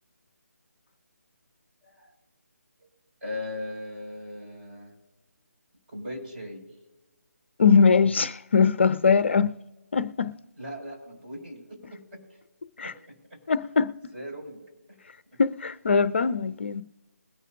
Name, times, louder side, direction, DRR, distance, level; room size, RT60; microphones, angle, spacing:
voice 1, 1.8-2.2 2.8-2.9 3.2-4.9 5.9-6.6 10.6-12.2 12.8-13.4 14.1-14.6 14.9-15.0 15.3-15.4, left 1 dB, 35° right, 4.8 m, -39 dB
voice 2, 7.6-9.6 9.9-10.3 12.8-12.9 13.5-13.9 15.4-16.8, left 5 dB, 45° left, 0.5 m, -21 dB
21.5 x 9.9 x 2.4 m
figure-of-eight pair, 150°, 9 cm